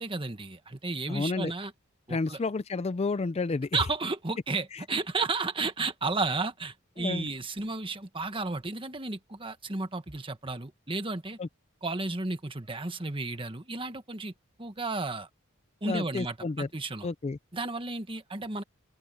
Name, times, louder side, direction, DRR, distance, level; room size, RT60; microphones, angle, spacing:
voice 1, 0.0-1.7 2.1-2.4 3.7-11.4 11.8-14.3 14.6-15.3 15.8-17.1 17.5-18.6, right 3 dB, 25° right, 1.5 m, -33 dB
voice 2, 1.1-1.5 2.1-3.7 4.7-4.8 7.0-7.3 11.4-11.5 15.8-16.7 17.0-17.4, left 3 dB, 30° left, 0.4 m, -31 dB
open air
head